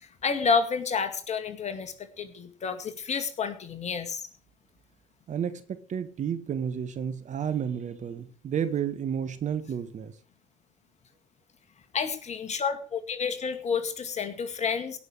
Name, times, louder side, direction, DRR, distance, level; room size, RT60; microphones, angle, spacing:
voice 1, 0.0-4.2 11.9-15.0, left 5 dB, 45° left, 2.1 m, -30 dB
voice 2, 5.3-10.1, right 8 dB, 50° right, 1.6 m, -31 dB
17.0 x 6.2 x 6.4 m
hypercardioid pair, 50°, 16 cm